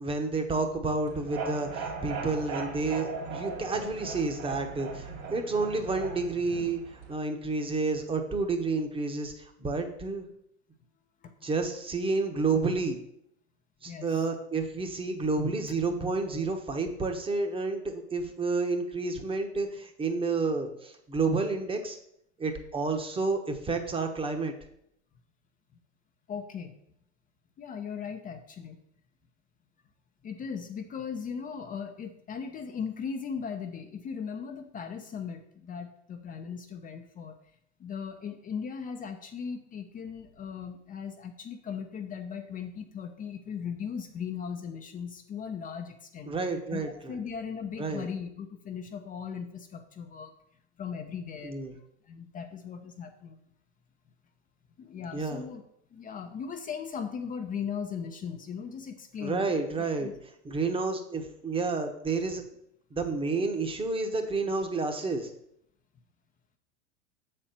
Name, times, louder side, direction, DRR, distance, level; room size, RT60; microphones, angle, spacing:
voice 1, 0.0-10.3 11.4-13.0 13.8-22.0 22.4-24.5 46.3-47.2 47.8-48.1 51.4-51.7 55.1-55.4 59.2-60.1 60.4-62.4 62.9-65.3, right 3 dB, 15° right, 6 dB, 1.1 m, -30 dB
sound 1, 1.0-7.1, right 4 dB, 55° right, 2.8 m, -38 dB
voice 2, 11.2-11.5 13.9-14.3 26.3-26.7 27.6-28.8 30.2-37.4 37.8-46.3 46.7-50.3 50.8-51.6 52.1-53.4 54.8-55.6 55.9-60.1, left 6 dB, 20° left, 5 dB, 0.7 m, -38 dB
6.9 x 4.4 x 6.7 m, 0.73 s
hypercardioid pair, 105°, 36 cm